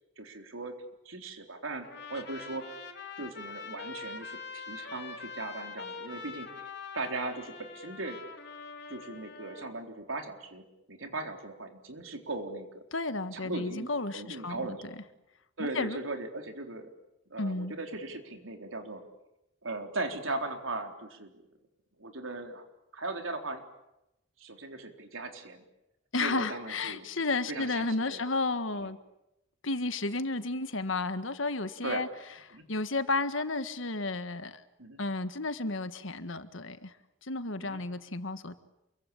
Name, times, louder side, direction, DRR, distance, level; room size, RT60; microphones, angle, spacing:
voice 1, 0.2-0.7 1.1-2.8 3.2-6.5 6.9-8.2 8.9-10.6 10.9-12.8 13.3-14.9 15.6-16.9 17.3-19.0 19.6-21.4 22.0-22.6 22.9-23.6 24.4-25.6 26.2-27.0 27.5-28.2 28.8-28.9 31.8-32.0 32.5-32.6 34.8-35.0 37.6-37.8, right 2 dB, 85° right, 5 dB, 3.9 m, -38 dB
Trumpet, 1.8-9.7, left 4 dB, 55° left, 3.3 m, -44 dB
voice 2, 12.9-14.8 15.6-16.0 17.4-17.7 26.1-29.0 29.6-32.1 32.5-34.6 35.0-36.9 37.2-38.5, left 3 dB, 75° left, 11 dB, 1.7 m, -32 dB
28.5 x 23.0 x 8.7 m, 0.90 s
head